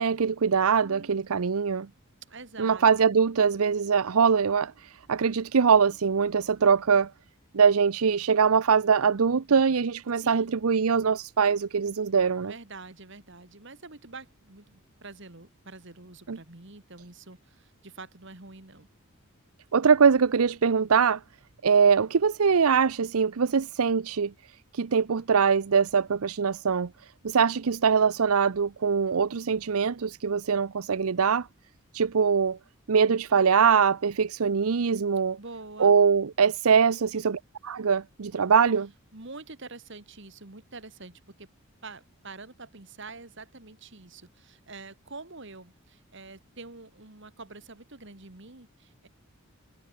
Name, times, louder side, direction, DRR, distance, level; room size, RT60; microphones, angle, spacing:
voice 1, 0.0-1.9 2.6-7.1 7.5-12.5 16.3-16.4 19.7-21.2 21.6-24.3 24.7-26.9 27.2-31.5 31.9-32.6 32.9-35.4 35.8-38.9, right 6 dB, 80° right, 0.6 m, -23 dB
voice 2, 0.8-1.1 2.3-2.8 10.2-10.5 12.4-18.9 35.4-35.9 36.9-37.3 39.1-41.5 41.8-49.1, right 3 dB, 55° right, 2.2 m, -46 dB
head